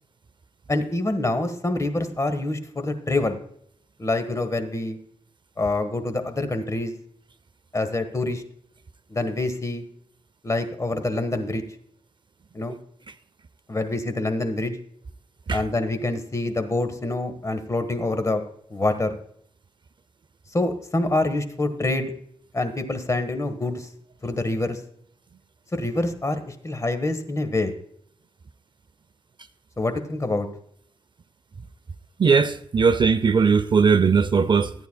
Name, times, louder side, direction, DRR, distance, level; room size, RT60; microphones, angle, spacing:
voice 1, 0.7-3.4 4.0-5.0 5.6-6.9 7.7-8.4 9.1-9.8 10.4-11.6 12.5-12.8 13.7-14.8 15.5-18.4 18.7-19.1 20.5-22.1 22.5-23.9 24.2-24.8 25.7-27.7 29.8-30.5, left 2 dB, 25° left, 1.3 m, -26 dB
voice 2, 32.2-34.7, right 5 dB, 40° right, 0.5 m, -19 dB
14.5 x 9.2 x 2.2 m
cardioid pair, 90°, 12 cm